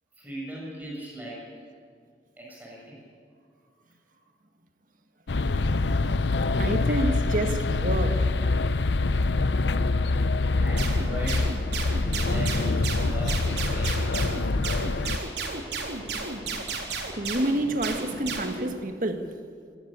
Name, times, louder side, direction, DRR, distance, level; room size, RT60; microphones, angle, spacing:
voice 1, 0.2-1.4 2.4-3.0 6.5-7.0 10.6-11.6 12.1-14.6, equal, 10° right, 7.2 m, -40 dB
sound 1, 5.3-15.2, left 3 dB, 85° left, 0.7 m, -25 dB
voice 2, 6.6-8.3 17.1-19.3, right 1 dB, 50° right, 1.7 m, -28 dB
sound 2, 10.8-18.6, right 4 dB, 75° right, 4.0 m, -33 dB
26.5 x 16.0 x 8.9 m
head